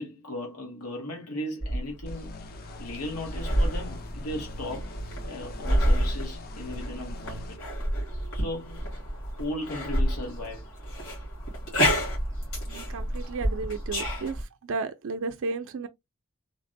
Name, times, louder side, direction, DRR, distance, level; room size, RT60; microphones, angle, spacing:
voice 1, 0.0-2.5 2.8-7.7 8.3-8.9 9.2-10.7, left 1 dB, 90° left, 0.9 m, -37 dB
sound 1, 1.6-14.4, equal, 70° left, 1.9 m, -30 dB
sound 2, 2.1-7.6, left 4 dB, 45° left, 0.4 m, -45 dB
voice 2, 12.7-14.4 14.7-15.9, right 4 dB, 65° right, 0.4 m, -33 dB
3.2 x 2.1 x 2.5 m
head